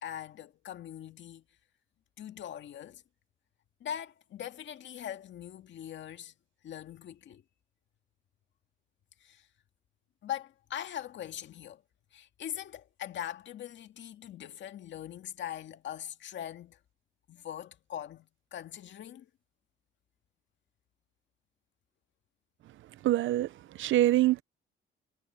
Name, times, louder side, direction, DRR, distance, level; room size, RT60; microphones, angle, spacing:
voice 1, 0.0-1.4 2.2-3.0 3.8-6.3 6.6-7.4 9.2-9.5 10.2-11.8 12.1-16.8 17.3-19.3, left 10 dB, 70° left, 2.0 m, -41 dB
voice 2, 23.0-23.5 23.8-24.4, right 14 dB, 75° right, 0.8 m, -24 dB
cardioid pair, 90°, 20 cm